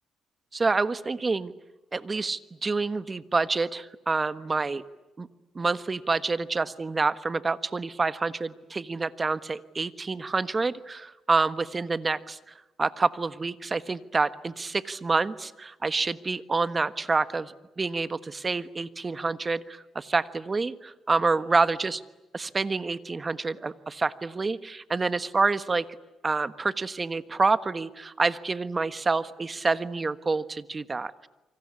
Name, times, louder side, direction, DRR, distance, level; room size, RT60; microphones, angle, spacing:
voice 1, 0.5-1.5 1.9-4.8 5.2-5.3 5.5-22.0 22.3-25.8 26.2-31.3, right 3 dB, 30° right, 13 dB, 1.3 m, -27 dB
28.0 x 25.0 x 8.5 m, 1.1 s
cardioid pair, 90°, 0 cm